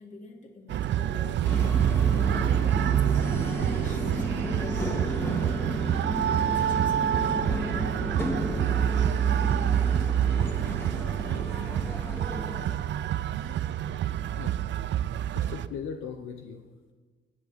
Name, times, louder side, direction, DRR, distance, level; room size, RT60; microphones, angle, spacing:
voice 1, 0.0-4.3 4.6-9.2, left 3 dB, 40° left, 1 dB, 2.8 m, -48 dB
sound 1, 0.7-15.7, right 10 dB, 65° right, 0.5 m, -27 dB
sound 2, 1.4-12.7, equal, 10° left, 2.0 m, -33 dB
voice 2, 15.3-16.6, left 7 dB, 80° left, 4 dB, 1.0 m, -38 dB
20.5 x 8.3 x 5.8 m, 1.5 s
cardioid pair, 90°, 20 cm